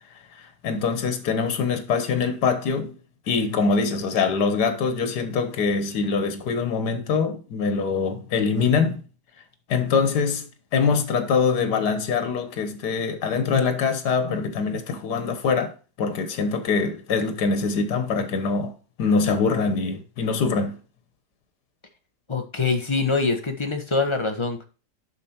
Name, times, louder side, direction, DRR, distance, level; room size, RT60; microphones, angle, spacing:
voice 1, 0.4-3.0 3.3-9.0 9.7-10.5 10.7-15.7 16.0-18.7 19.0-20.8, left 5 dB, 80° left, 1.8 m, -23 dB
voice 2, 22.3-24.6, left 4 dB, 20° left, 1.1 m, -24 dB
7.0 x 6.1 x 4.4 m
omnidirectional pair, 1.7 m